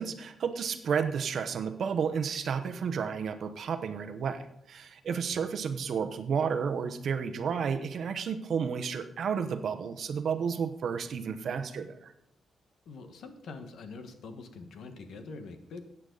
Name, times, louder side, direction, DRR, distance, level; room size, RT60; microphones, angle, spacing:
voice 1, 0.0-12.1, right 6 dB, 55° right, 9 dB, 0.9 m, -32 dB
voice 2, 5.1-5.5 12.8-15.8, left 4 dB, 70° left, 7 dB, 1.4 m, -45 dB
14.5 x 9.0 x 4.0 m, 0.78 s
wide cardioid pair, 160°, 0 cm